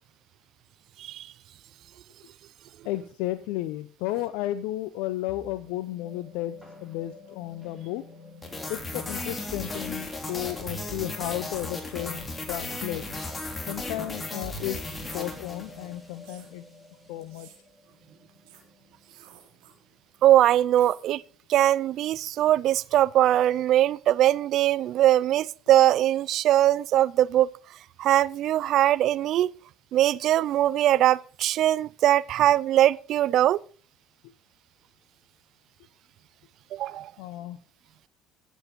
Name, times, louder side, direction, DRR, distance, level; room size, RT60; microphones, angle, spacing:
voice 1, 2.8-6.6 6.8-8.0 8.7-13.1 13.7-14.8 15.1-16.6 17.1-17.5 37.2-37.6, left 15 dB, 80° left, 0.7 m, -33 dB
sound 1, 5.3-19.7, left 3 dB, ahead, 5.1 m, -50 dB
sound 2, 8.4-16.0, left 2 dB, 25° left, 3.4 m, -35 dB
sound 3, 15.1-15.2 16.2-16.5 17.2-17.6 18.5-18.6 19.0-19.7 20.7-21.0, right 9 dB, 80° right, 3.6 m, -53 dB
voice 2, 20.2-21.2 21.5-27.5 28.0-29.5 29.9-33.6 36.7-37.1, right 13 dB, 65° right, 0.4 m, -21 dB
13.5 x 8.3 x 5.2 m
hypercardioid pair, 70°, 0 cm